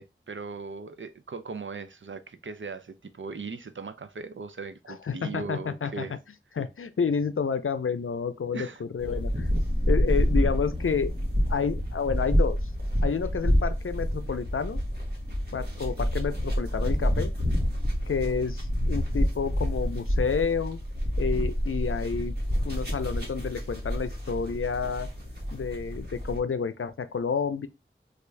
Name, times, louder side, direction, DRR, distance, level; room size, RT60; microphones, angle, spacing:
voice 1, 0.0-6.2 8.5-8.8, right 4 dB, 70° right, 0.5 m, -39 dB
voice 2, 4.9-6.2 6.6-9.5 9.9-12.6 13.0-14.8 15.5-17.3 18.1-20.8 21.2-22.4 22.6-25.1 25.5-27.7, left 6 dB, 90° left, 0.5 m, -30 dB
sound 1, 9.0-26.4, equal, 50° right, 1.5 m, -28 dB
3.5 x 2.4 x 3.1 m
wide cardioid pair, 45°, 21 cm